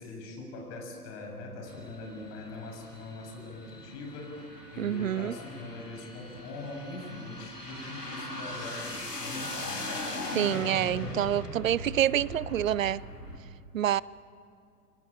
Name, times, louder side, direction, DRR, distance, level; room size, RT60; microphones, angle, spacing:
voice 1, 0.0-4.4 4.7-10.1, left 2 dB, 35° left, 6.9 m, -42 dB
sound 1, 1.7-13.4, left 2 dB, 85° left, 4.3 m, -40 dB
sound 2, 1.7-10.8, right 4 dB, 20° right, 3.1 m, -50 dB
voice 2, 4.8-5.3 10.3-13.0 13.7-14.0, right 11 dB, 55° right, 0.7 m, -27 dB
28.5 x 23.5 x 8.9 m
figure-of-eight pair, 110°, 47 cm